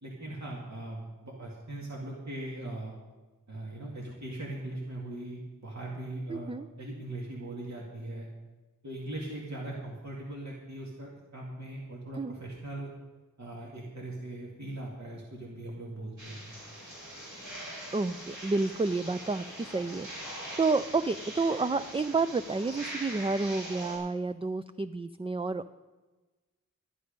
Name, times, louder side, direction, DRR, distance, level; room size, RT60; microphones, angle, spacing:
voice 1, 0.0-2.9 3.5-8.3 8.8-12.9 13.4-16.4, right 1 dB, 60° right, -3 dB, 2.3 m, -40 dB
voice 2, 6.3-6.7 12.2-12.4 17.9-20.1 20.6-25.8, right 3 dB, 20° right, 11 dB, 0.3 m, -30 dB
sound 1, 16.2-24.0, right 1 dB, 85° right, 5.2 m, -42 dB
12.5 x 11.0 x 5.2 m, 1.2 s
wide cardioid pair, 60°, 32 cm